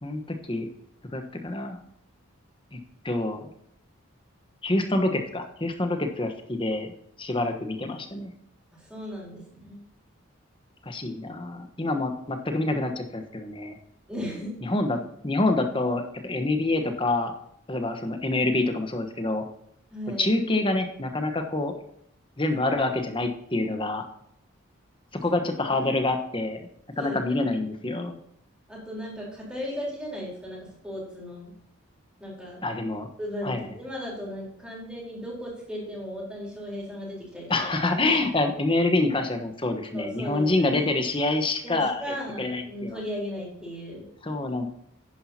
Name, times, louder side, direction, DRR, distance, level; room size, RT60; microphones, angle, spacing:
voice 1, 0.0-0.7 1.1-1.8 2.7-2.8 3.0-3.5 4.6-6.9 7.2-8.3 10.8-13.8 14.6-17.3 17.7-19.4 20.2-21.7 22.4-24.0 25.2-26.7 27.0-28.2 32.6-33.1 33.4-33.6 37.5-42.0 42.4-43.0 44.2-44.6, left 2 dB, 25° left, 6 dB, 1.1 m, -26 dB
voice 2, 8.7-9.8 14.1-14.5 19.9-20.3 25.7-25.9 27.0-27.7 28.7-31.5 32.2-32.6 33.2-37.7 39.9-40.9 41.6-44.1, equal, 5° right, -4 dB, 4.0 m, -36 dB
10.5 x 10.0 x 2.9 m, 0.73 s
head